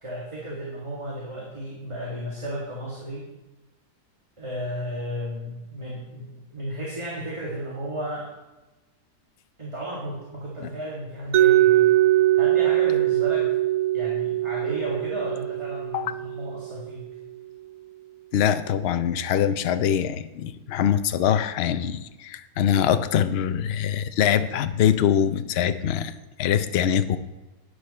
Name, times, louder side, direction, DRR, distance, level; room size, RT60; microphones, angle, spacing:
voice 1, 0.0-3.3 4.4-8.3 9.6-11.9 12.3-13.5 13.9-17.0, equal, 20° right, -4 dB, 2.0 m, -34 dB
Mallet percussion, 11.3-17.2, right 14 dB, 65° right, 1.0 m, -22 dB
voice 2, 18.3-26.1 26.4-27.2, left 9 dB, 60° left, 11 dB, 0.6 m, -23 dB
12.0 x 9.7 x 4.2 m, 1.1 s
omnidirectional pair, 1.7 m